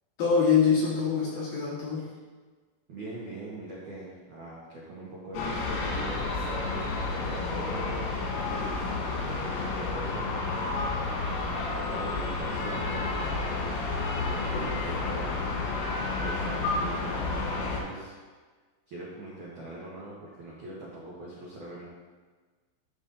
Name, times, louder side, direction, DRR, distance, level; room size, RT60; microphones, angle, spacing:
voice 1, 0.2-2.1 14.5-14.7, left 6 dB, 60° left, -8 dB, 2.5 m, -24 dB
voice 2, 2.9-8.0 8.3-10.4 11.5-13.7 14.1-15.4 16.2-18.2 18.9-21.9, right 1 dB, 75° right, -7 dB, 1.8 m, -42 dB
sound 1, 5.3-17.8, left 3 dB, 80° left, 4.0 m, -30 dB
13.5 x 5.4 x 2.7 m, 1.4 s
omnidirectional pair, 5.8 m